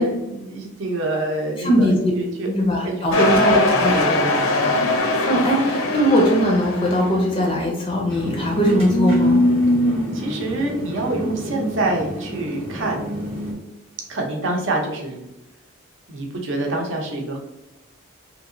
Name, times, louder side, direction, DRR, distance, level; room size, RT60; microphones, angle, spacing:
voice 1, 0.0-2.5 2.8-4.5 10.1-13.0 14.1-15.3 16.1-17.4, right 2 dB, 60° right, 0 dB, 0.7 m, -26 dB
voice 2, 1.6-2.0 2.5-3.9 5.2-9.4, equal, 25° left, -1 dB, 0.5 m, -20 dB
sound 1, 3.1-7.2, left 2 dB, 75° left, 0.6 m, -21 dB
sound 2, 8.1-13.5, equal, 30° right, 0.8 m, -23 dB
2.9 x 2.8 x 2.6 m, 0.92 s
head